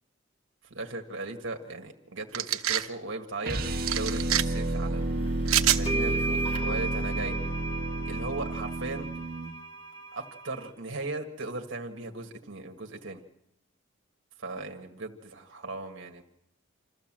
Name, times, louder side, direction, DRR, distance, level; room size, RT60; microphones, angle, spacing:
voice 1, 0.7-5.4 5.7-7.4 8.0-9.1 10.1-13.2 14.4-16.2, right 2 dB, 65° right, 3 dB, 1.7 m, -37 dB
sound 1, 2.3-2.9 3.9-4.4 5.5-5.8, right 12 dB, 80° right, 1.1 m, -25 dB
sound 2, 3.4-9.5, right 2 dB, 45° right, 1.6 m, -31 dB
sound 3, 5.3-5.4 5.9-10.7, right 3 dB, 25° left, 1.5 m, -35 dB
27.0 x 14.5 x 7.5 m, 0.78 s
head